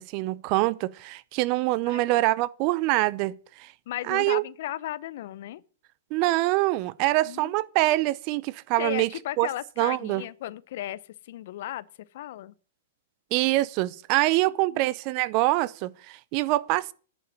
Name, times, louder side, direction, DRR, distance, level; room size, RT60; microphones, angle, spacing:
voice 1, 0.0-3.7 4.1-4.4 6.1-9.1 9.4-9.5 9.8-10.2 13.3-16.9, right 19 dB, 45° right, 0.5 m, -25 dB
voice 2, 3.9-5.6 7.2-7.6 8.8-11.9 12.1-12.5 14.4-14.8, left 14 dB, 60° left, 0.6 m, -35 dB
10.5 x 5.7 x 8.4 m
hypercardioid pair, 115°, 0 cm